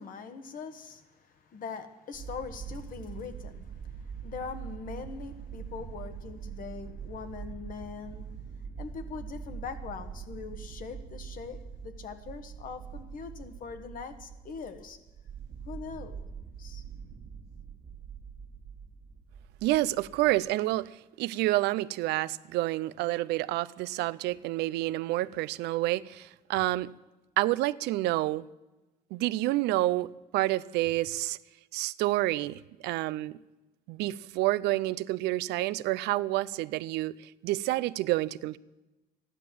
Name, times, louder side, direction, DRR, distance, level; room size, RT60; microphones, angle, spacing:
voice 1, 0.0-8.3 8.8-15.0 15.6-16.2 16.6-16.8, left 5 dB, 55° left, 1.5 m, -42 dB
sound 1, 2.1-20.5, right 7 dB, 50° right, 1.6 m, -44 dB
voice 2, 19.6-26.9 27.4-28.5 29.1-31.4 31.7-33.4 33.9-38.6, right 17 dB, 90° right, 0.5 m, -29 dB
13.5 x 11.0 x 7.6 m
cardioid pair, 110°, 17 cm